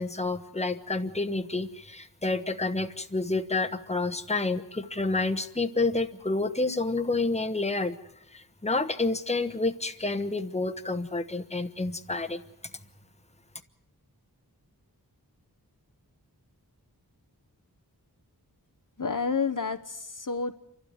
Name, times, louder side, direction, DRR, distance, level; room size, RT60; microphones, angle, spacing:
voice 1, 0.0-8.0 8.3-12.4, left 3 dB, 15° left, 7 dB, 1.1 m, -29 dB
voice 2, 19.0-20.5, left 5 dB, 55° left, 7 dB, 1.0 m, -29 dB
28.5 x 12.0 x 9.5 m, 0.79 s
wide cardioid pair, 45°, 39 cm